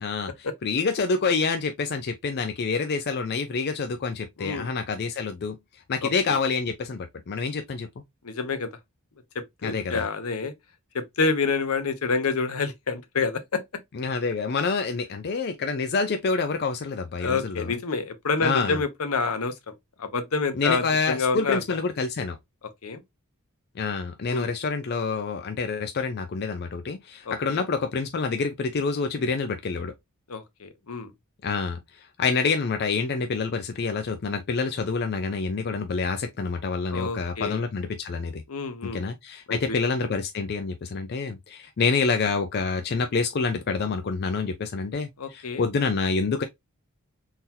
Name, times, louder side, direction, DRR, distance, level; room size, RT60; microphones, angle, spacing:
voice 1, 0.0-5.6 5.9-7.9 9.6-10.1 13.9-17.8 18.4-18.8 20.6-22.4 23.8-29.9 31.4-38.4 38.8-46.4, left 4 dB, 45° left, 0.4 m, -27 dB
voice 2, 8.2-8.7 9.3-10.5 10.9-13.6 17.2-19.7 20.0-21.8 22.8-23.0 24.3-24.5 27.3-27.6 30.3-31.1 36.9-37.6 38.5-39.0 39.5-39.8 45.2-45.6, left 4 dB, 75° left, 0.8 m, -28 dB
3.8 x 2.8 x 2.6 m
head